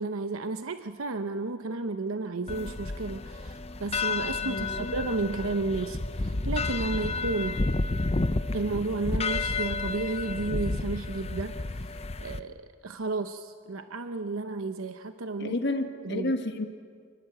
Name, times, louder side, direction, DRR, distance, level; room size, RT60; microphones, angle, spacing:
voice 1, 0.0-7.6 8.5-12.6 12.8-15.5 16.0-16.3, right 3 dB, 90° right, 8 dB, 0.9 m, -32 dB
sound 1, 2.5-12.4, left 3 dB, 30° left, 0.7 m, -31 dB
sound 2, 4.1-10.8, equal, 5° right, 7.0 m, -42 dB
voice 2, 4.4-4.9 15.4-16.7, left 2 dB, 55° left, 6 dB, 1.5 m, -31 dB
28.0 x 20.0 x 8.0 m, 2.1 s
head